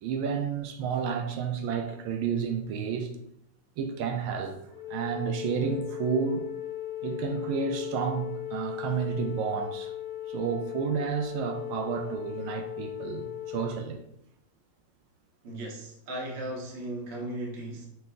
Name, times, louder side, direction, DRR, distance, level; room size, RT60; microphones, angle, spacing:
voice 1, 0.0-3.1 3.8-4.5 4.9-6.5 7.0-9.9 10.3-14.0, right 6 dB, 80° right, 1.4 m, -31 dB
Wind instrument woodwind instrument, 4.7-13.9, left 12 dB, 90° left, 1.6 m, -37 dB
voice 2, 15.4-17.9, right 1 dB, 45° right, 0.8 m, -36 dB
5.6 x 2.1 x 3.6 m
omnidirectional pair, 2.2 m